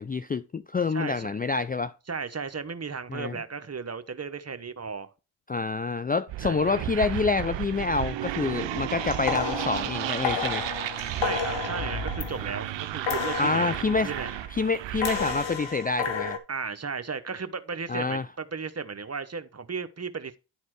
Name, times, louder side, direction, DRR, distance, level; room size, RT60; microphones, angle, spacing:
voice 1, 0.0-1.9 3.1-3.3 5.5-10.6 13.4-14.1 14.5-16.4 17.9-18.3, left 4 dB, 20° left, 0.4 m, -27 dB
voice 2, 0.9-1.3 2.1-5.1 6.4-6.6 11.1-14.3 16.5-20.4, right 5 dB, 35° right, 1.1 m, -35 dB
sound 1, 6.3-15.7, right 13 dB, 70° right, 0.7 m, -33 dB
sound 2, 9.0-12.7 13.0-14.5 15.0-16.4, left 6 dB, 75° left, 1.3 m, -32 dB
11.0 x 4.2 x 4.7 m
supercardioid pair, 45°, 45 cm